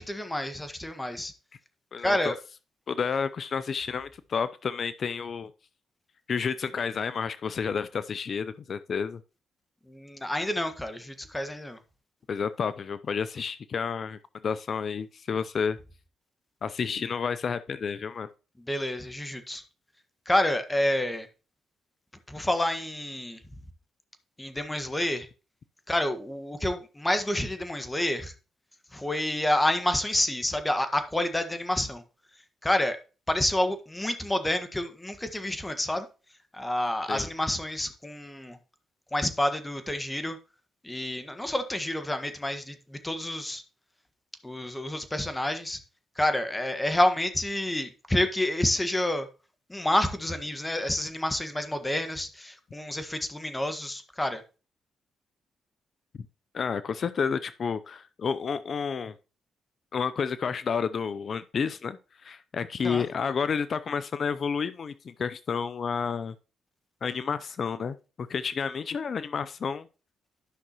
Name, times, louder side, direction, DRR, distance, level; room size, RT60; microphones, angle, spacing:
voice 1, 0.0-1.3 2.0-2.4 9.9-11.8 18.7-19.6 20.2-21.3 22.3-23.4 24.4-25.3 25.9-28.3 28.9-32.0 32.6-33.0 33.3-36.1 36.5-38.6 39.1-40.4 40.8-43.6 44.4-45.8 46.2-49.3 49.7-54.4 62.8-63.0, left 1 dB, 15° left, 1.5 m, -28 dB
voice 2, 1.9-2.3 2.9-5.5 6.3-9.2 12.3-15.8 16.6-18.3 37.1-37.3 56.5-59.2 59.9-66.3 67.0-69.9, left 6 dB, 55° left, 0.5 m, -30 dB
11.5 x 5.9 x 2.9 m
supercardioid pair, 55°, 0 cm